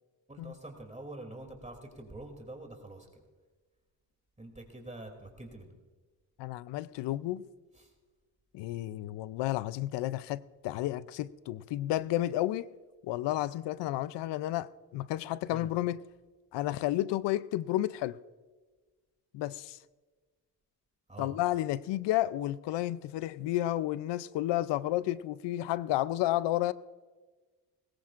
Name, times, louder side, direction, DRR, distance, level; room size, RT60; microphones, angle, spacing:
voice 1, 0.3-3.1 4.4-5.7 7.7-7.9 15.5-15.7 21.1-21.4, right 2 dB, 15° right, 2.7 m, -46 dB
voice 2, 6.4-7.5 8.5-12.7 13.0-14.7 14.9-16.0 16.5-18.2 19.3-19.8 21.2-26.7, left 15 dB, 85° left, 0.5 m, -31 dB
20.0 x 17.5 x 2.5 m
supercardioid pair, 65°, 41 cm